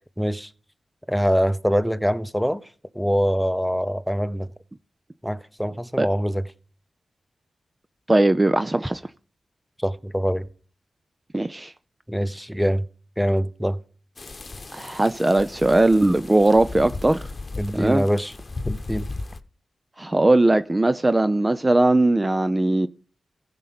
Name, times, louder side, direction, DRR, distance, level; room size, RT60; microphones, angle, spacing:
voice 1, 0.2-0.5 1.1-2.6 2.9-4.5 5.2-6.4 9.8-10.5 12.1-12.9 13.2-13.8 17.6-18.4 18.7-19.1, equal, ahead, 0.8 m, -24 dB
voice 2, 8.1-9.0 11.3-11.7 14.7-17.2 17.7-18.0 20.0-22.9, right 2 dB, 25° right, 0.4 m, -19 dB
sound 1, 14.2-19.4, left 2 dB, 45° left, 0.9 m, -36 dB
15.0 x 5.1 x 5.9 m
cardioid pair, 50°, 0 cm